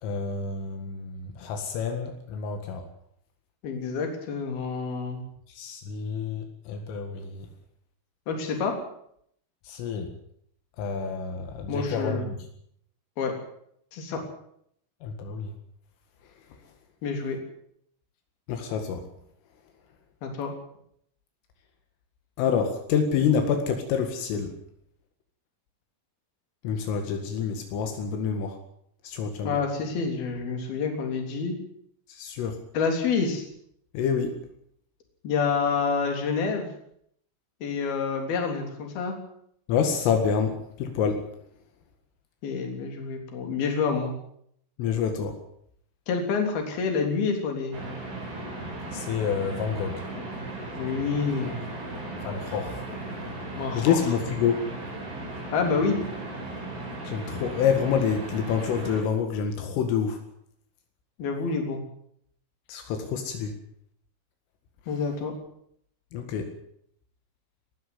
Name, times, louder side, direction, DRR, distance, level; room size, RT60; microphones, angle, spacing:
voice 1, 0.0-2.8 5.6-7.5 9.7-10.1 10.8-12.4 15.0-15.5 18.5-19.0 22.4-24.5 26.6-28.6 29.0-29.6 32.1-32.6 33.9-34.3 39.7-41.2 44.8-45.3 48.9-50.0 52.2-52.8 53.7-54.6 57.1-60.2 62.7-63.5 66.1-66.5, left 7 dB, 80° left, 5 dB, 4.5 m, -27 dB
voice 2, 3.6-5.2 8.3-8.8 11.7-12.3 13.2-13.3 13.9-14.2 17.0-17.4 20.2-20.5 29.4-31.6 32.7-33.5 35.2-36.7 37.6-39.2 42.4-44.2 46.1-47.8 50.8-51.6 53.6-54.1 55.5-56.0 61.2-61.8 64.9-65.3, left 5 dB, 50° left, 4 dB, 5.0 m, -28 dB
sound 1, 47.7-59.0, right 2 dB, 55° right, 9.8 m, -36 dB
20.0 x 14.0 x 9.6 m, 0.70 s
omnidirectional pair, 5.8 m